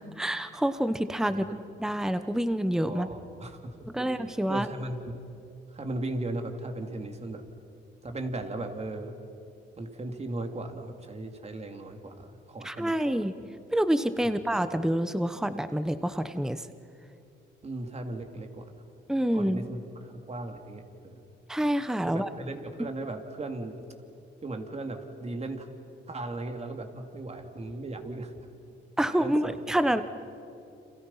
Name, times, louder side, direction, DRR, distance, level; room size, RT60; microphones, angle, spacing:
voice 1, 0.0-1.5 1.8-3.1 3.9-4.7 12.6-13.4 13.7-16.7 19.1-19.6 21.5-22.3 29.0-30.0, right 1 dB, 5° right, 11 dB, 1.0 m, -27 dB
voice 2, 1.3-1.6 2.9-4.1 4.5-5.2 5.7-7.4 8.0-9.1 9.8-13.2 14.2-14.4 17.6-18.8 19.3-21.2 22.1-23.8 24.4-25.7 26.1-28.5 29.2-29.8, right 2 dB, 30° right, 5 dB, 2.9 m, -37 dB
30.0 x 28.0 x 5.7 m, 2.7 s
cardioid pair, 90°, 20 cm